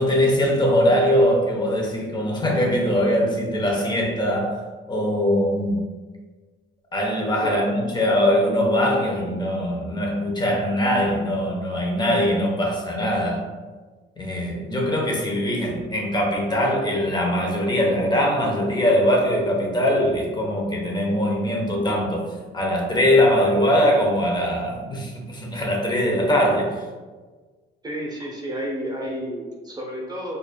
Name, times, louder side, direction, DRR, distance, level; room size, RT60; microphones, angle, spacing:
voice 1, 0.0-4.6 4.9-5.8 6.9-13.4 14.2-22.3 22.5-26.7, equal, 20° left, -1 dB, 0.9 m, -21 dB
voice 2, 7.4-7.7 27.8-30.4, equal, 20° right, -2 dB, 0.9 m, -31 dB
4.5 x 2.6 x 2.2 m, 1.4 s
cardioid pair, 90°, 20 cm